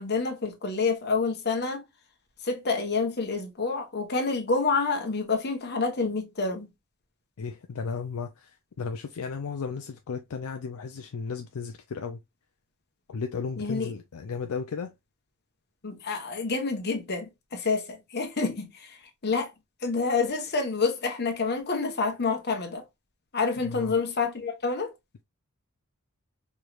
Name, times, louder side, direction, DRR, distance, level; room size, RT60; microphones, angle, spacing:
voice 1, 0.0-1.8 2.4-6.7 13.6-13.9 15.8-19.0 19.2-19.5 19.8-22.8 23.3-24.9, left 4 dB, 45° left, 1.1 m, -28 dB
voice 2, 7.4-12.2 13.1-14.9 23.6-23.9, left 5 dB, 70° left, 0.4 m, -34 dB
4.6 x 3.2 x 2.4 m
head